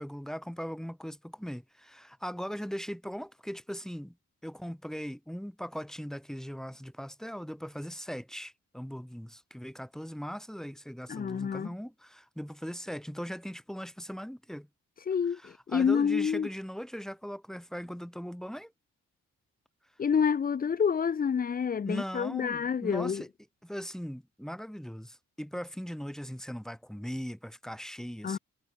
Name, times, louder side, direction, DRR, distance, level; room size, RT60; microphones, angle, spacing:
voice 1, 0.0-4.2 4.4-14.7 15.3-18.7 21.8-23.3 23.6-28.4, equal, ahead, 1.5 m, -39 dB
voice 2, 11.1-11.7 15.1-16.5 20.0-23.2 28.2-28.4, left 7 dB, 30° left, 0.4 m, -28 dB
supercardioid pair, 45°, 33 cm